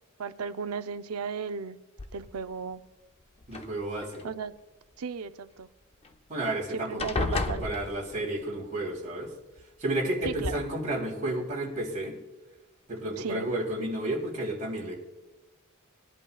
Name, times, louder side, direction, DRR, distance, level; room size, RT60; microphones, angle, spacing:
voice 1, 0.2-1.8 2.1-2.8 4.2-4.5 5.0-5.7 6.7-7.6 10.2-10.6 13.2-13.5, right 5 dB, 90° right, 11 dB, 0.6 m, -35 dB
sound 1, 2.0-2.6 3.4-4.2 6.0-6.1 6.4-6.7 7.0-8.4 9.6-9.7 10.2-10.6, left 3 dB, 30° left, 0.6 m, -33 dB
voice 2, 3.5-4.2 6.3-9.3 9.8-12.1 12.9-15.0, right 1 dB, 35° right, -4 dB, 3.2 m, -32 dB
20.5 x 10.5 x 2.3 m, 1.1 s
head